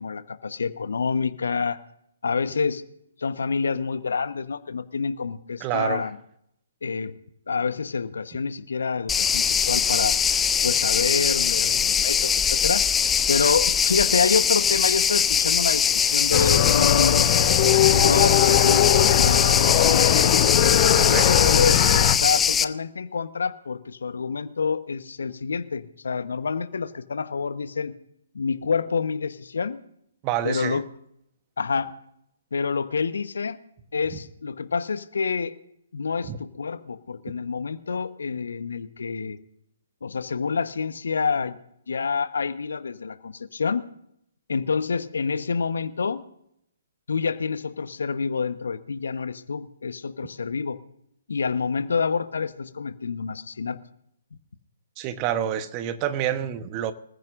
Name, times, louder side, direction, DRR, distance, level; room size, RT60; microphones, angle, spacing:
voice 1, 0.0-1.8 2.2-2.8 3.2-6.2 6.8-7.2 7.5-10.2 10.6-12.9 13.3-17.3 17.9-20.3 21.1-27.9 28.3-29.8 30.4-30.8 31.6-31.9 32.5-33.6 33.9-35.5 35.9-39.4 40.0-41.6 41.9-43.8 44.5-46.2 47.1-50.8 51.3-53.8, left 5 dB, 70° left, 1.1 m, -27 dB
voice 2, 5.6-6.1 21.0-21.3 30.2-30.8 36.2-36.4 55.0-56.9, right 11 dB, 30° right, 1.1 m, -28 dB
sound 1, 9.1-22.6, left 7 dB, 10° left, 0.5 m, -22 dB
sound 2, 16.3-22.2, left 10 dB, 40° left, 1.2 m, -20 dB
25.5 x 15.0 x 2.6 m
figure-of-eight pair, 130°, 0 cm